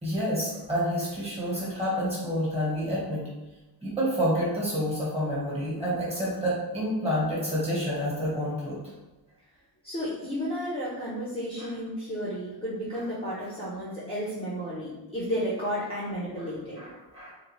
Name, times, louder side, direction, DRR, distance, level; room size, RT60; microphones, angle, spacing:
voice 1, 0.0-3.3 3.8-8.8 16.8-17.3, equal, 15° right, -8 dB, 1.3 m, -28 dB
voice 2, 9.8-16.8, equal, 15° left, -8 dB, 0.7 m, -32 dB
3.9 x 2.3 x 3.0 m, 1.0 s
wide cardioid pair, 175°, 42 cm